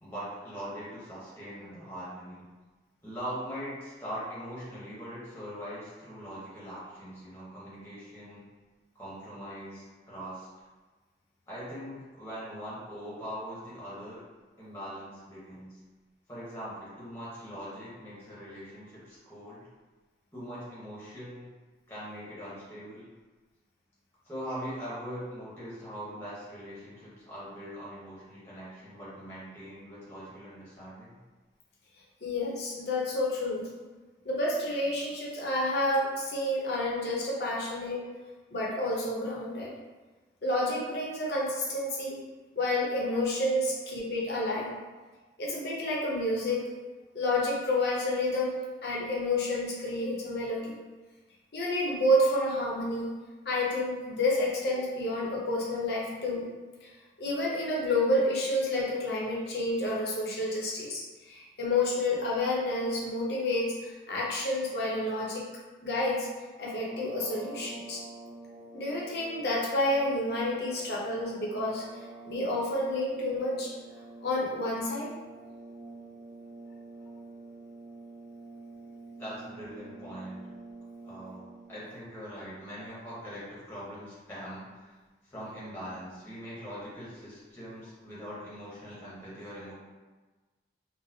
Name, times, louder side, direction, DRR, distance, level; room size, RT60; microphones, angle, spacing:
voice 1, 0.0-2.4 3.0-8.4 8.9-10.5 11.5-14.2 14.6-15.8 16.3-19.7 20.3-21.4 21.9-23.1 24.2-31.2 41.8-41.9 43.1-43.3 79.2-80.4 81.0-84.9 85.2-89.7, equal, 15° left, -9 dB, 0.9 m, -42 dB
voice 2, 32.2-33.7 34.2-38.1 38.5-39.7 40.4-42.2 42.6-44.7 45.4-46.7 47.1-50.7 51.5-53.1 53.4-56.5 56.8-56.9 57.2-65.4 65.8-66.3 66.6-68.0 68.7-71.8 72.2-73.7 74.2-75.1, left 1 dB, 70° left, -4 dB, 0.7 m, -29 dB
sound 1, 66.8-81.9, right 2 dB, 20° right, 0.3 m, -47 dB
3.9 x 2.1 x 2.7 m, 1.3 s
head